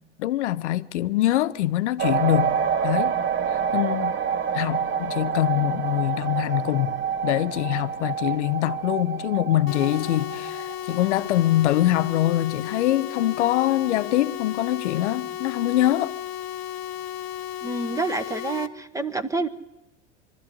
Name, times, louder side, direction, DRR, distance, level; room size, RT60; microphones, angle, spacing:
voice 1, 0.2-2.6 2.8-3.1 3.5-4.2 4.5-6.9 7.2-16.1, left 14 dB, 75° left, 0.9 m, -24 dB
sound 1, 2.0-11.1, right 7 dB, 35° right, 1.2 m, -27 dB
sound 2, 9.7-18.7, left 12 dB, 45° left, 1.3 m, -34 dB
voice 2, 17.6-19.5, right 3 dB, 10° right, 1.2 m, -28 dB
23.5 x 13.0 x 9.7 m
hypercardioid pair, 90°, 35 cm